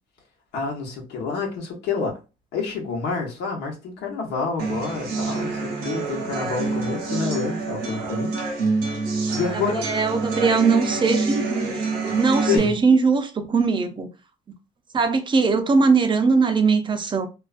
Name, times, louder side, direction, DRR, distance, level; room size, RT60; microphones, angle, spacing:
voice 1, 0.5-2.2 2.5-8.6 9.3-9.8 12.5-12.8, left 5 dB, 80° left, 1.0 m, -28 dB
sound 1, 4.6-12.6, right 3 dB, 80° right, 0.9 m, -26 dB
voice 2, 9.5-11.7 12.0-14.1 14.9-17.3, right 4 dB, 30° right, 0.4 m, -20 dB
2.5 x 2.3 x 2.4 m
cardioid pair, 110°, 17 cm